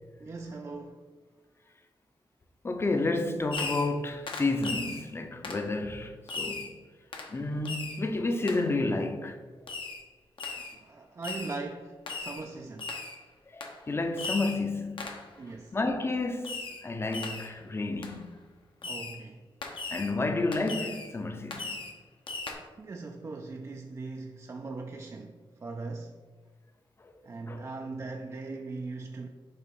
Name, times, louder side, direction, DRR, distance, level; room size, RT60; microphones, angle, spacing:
voice 1, 0.2-1.0 10.6-12.9 15.4-15.8 18.8-19.5 22.8-26.2 27.2-29.3, right 3 dB, 35° right, 0.3 m, -40 dB
voice 2, 2.6-6.7 7.3-9.4 13.5-15.1 15.7-18.3 19.9-21.8 27.0-27.1 27.5-27.7, left 2 dB, 25° left, 0.6 m, -31 dB
Fireworks, 3.5-4.0 4.3-5.0 5.4-5.7 6.3-6.7 7.1-7.3 7.7-8.0 8.5-8.6 9.7-10.0 10.4-10.8 11.2-11.6 12.1-12.4 12.8-13.2 13.6-13.8 14.2-14.6 15.0-15.3 16.4-16.8 17.1-17.5 18.0-18.1 18.8-19.2 19.6-20.1 20.5-21.1 21.5-22.0 22.3-22.5, left 4 dB, 70° left, 1.0 m, -37 dB
6.8 x 2.9 x 5.3 m
wide cardioid pair, 120°, 9 cm